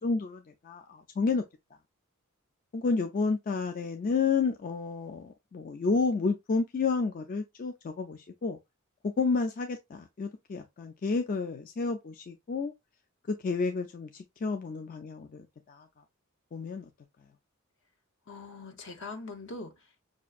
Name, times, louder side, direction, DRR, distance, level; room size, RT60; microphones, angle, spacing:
voice 1, 0.0-1.4 2.7-8.6 9.2-12.7 13.3-15.9 16.5-16.9, left 4 dB, 40° left, 0.4 m, -30 dB
voice 2, 18.3-20.1, left 3 dB, 60° left, 0.8 m, -42 dB
6.0 x 2.5 x 2.3 m
head